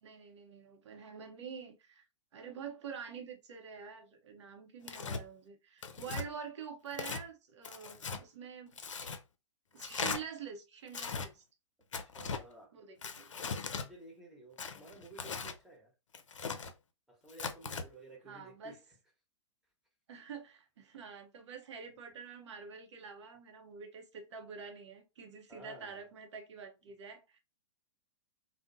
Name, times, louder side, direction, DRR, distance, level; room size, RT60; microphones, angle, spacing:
voice 1, 0.0-2.0 2.3-8.8 9.7-11.4 12.7-13.5 14.8-14.9 18.2-18.8 20.1-27.4, right 6 dB, 70° right, 0.7 m, -47 dB
Tearing, 4.8-5.2 5.8-6.3 6.9-7.2 7.6-8.2 8.8-9.2 9.8-10.2 10.9-11.3 11.9-12.4 13.0-13.9 14.6-15.6 16.1-16.7 17.3-17.8, left 5 dB, 90° left, 0.4 m, -39 dB
voice 2, 12.0-12.7 13.8-15.9 17.1-18.7 25.5-25.9, right 2 dB, ahead, 0.9 m, -54 dB
2.6 x 2.1 x 2.5 m
hypercardioid pair, 120°, 15 cm